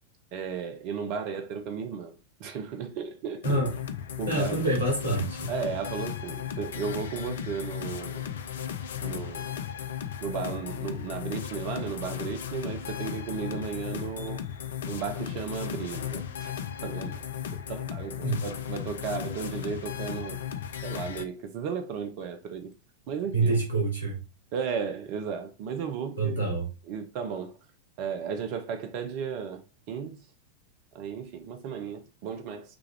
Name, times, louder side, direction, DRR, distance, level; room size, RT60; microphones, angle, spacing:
voice 1, 0.3-2.1 2.4-3.6 4.2-4.6 5.5-8.3 9.0-9.5 10.2-14.5 14.9-16.5 16.8-20.4 20.8-22.7 23.1-23.6 24.5-26.4 26.9-27.6 28.0-29.6 29.9-30.2 30.9-32.8, right 6 dB, 45° right, 0.6 m, -34 dB
sound 1, 3.4-21.3, left 9 dB, 60° left, 0.5 m, -36 dB
voice 2, 4.3-5.5 18.2-18.4 23.3-24.2 26.2-26.7, right 2 dB, 85° left, 1.6 m, -26 dB
6.0 x 2.5 x 3.2 m
figure-of-eight pair, 90°, 0 cm